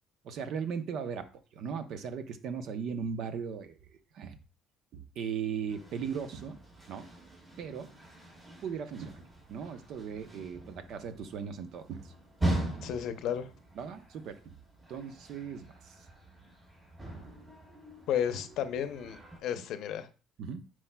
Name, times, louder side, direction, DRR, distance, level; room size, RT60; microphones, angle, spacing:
voice 1, 0.2-4.4 4.9-6.6 6.9-7.1 7.6-7.9 8.6-9.2 9.5-12.1 12.4-12.6 13.8-14.6 14.9-15.9 20.4-20.6, right 7 dB, 60° right, 9 dB, 0.8 m, -38 dB
sound 1, 5.7-19.4, right 1 dB, 20° right, 3.9 m, -41 dB
voice 2, 12.8-13.5 18.1-20.1, left 9 dB, 65° left, 11 dB, 0.7 m, -33 dB
9.8 x 4.7 x 2.3 m, 0.34 s
cardioid pair, 130°, 0 cm